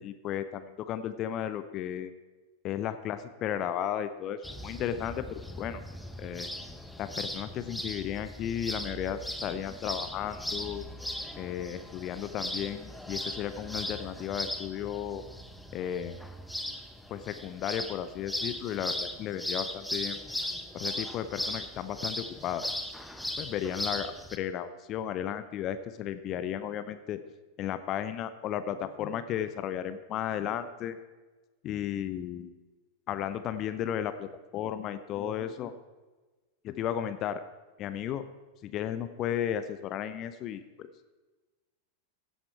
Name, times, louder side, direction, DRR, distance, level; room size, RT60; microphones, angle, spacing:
voice 1, 0.0-2.1 2.6-5.8 6.2-6.5 7.0-10.8 11.4-15.2 15.7-16.2 17.1-20.2 20.7-22.7 23.4-27.2 27.6-31.0 31.6-32.5 33.1-35.7 36.6-37.4 37.8-38.2 38.6-40.9, left 10 dB, 35° left, 11 dB, 0.6 m, -34 dB
sound 1, 4.4-24.4, left 1 dB, ahead, 0.8 m, -38 dB
16.0 x 8.1 x 4.5 m, 1.2 s
figure-of-eight pair, 90°, 0 cm